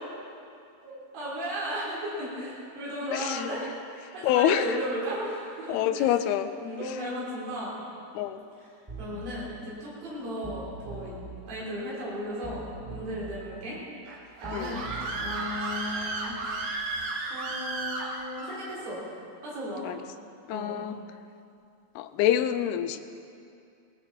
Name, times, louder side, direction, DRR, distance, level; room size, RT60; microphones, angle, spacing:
voice 1, 0.8-3.6 3.9-6.2 6.6-7.7 8.6-8.7 9.0-11.2 11.5-13.8 14.4-14.9 15.2-16.3 17.3-19.1 19.4-19.8 20.5-20.8, equal, 65° right, -7 dB, 5.7 m, -35 dB
voice 2, 3.1-3.4 4.2-4.7 5.7-6.5 8.2-8.4 14.5-14.8 19.8-20.0 20.5-21.0 22.0-23.0, left 11 dB, 80° left, 10 dB, 2.5 m, -26 dB
sound 1, 8.9-9.2 10.4-11.2 12.4-13.2 14.4-15.2, right 2 dB, 10° right, 1.5 m, -41 dB
Screaming, 14.1-18.6, right 3 dB, 85° right, 3.6 m, -34 dB
19.5 x 15.5 x 4.4 m, 2.4 s
omnidirectional pair, 4.6 m